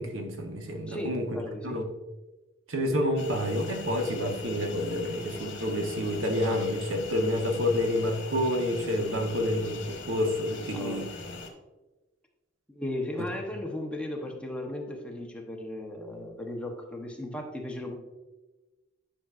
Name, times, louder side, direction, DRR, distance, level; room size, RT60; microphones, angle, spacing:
voice 1, 0.0-1.3 1.6-1.8 2.7-11.1, left 1 dB, 85° right, 3 dB, 1.0 m, -29 dB
voice 2, 0.9-1.8 10.7-11.1 12.7-17.9, left 1 dB, 5° left, 1 dB, 0.9 m, -36 dB
sound 1, 3.2-11.5, left 3 dB, 65° left, 1.3 m, -41 dB
10.0 x 5.8 x 2.5 m, 1.1 s
head